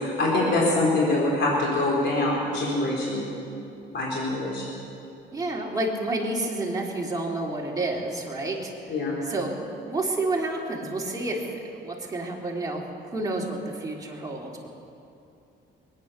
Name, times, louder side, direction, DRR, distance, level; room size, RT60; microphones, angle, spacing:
voice 1, 0.0-3.2 3.9-4.6 8.9-9.1, left 2 dB, 65° left, -4 dB, 4.0 m, -24 dB
voice 2, 5.3-9.5 9.9-12.8 13.1-14.7, right 2 dB, 20° right, -3 dB, 3.2 m, -30 dB
21.5 x 9.8 x 6.7 m, 2.7 s
cardioid pair, 90°, 20 cm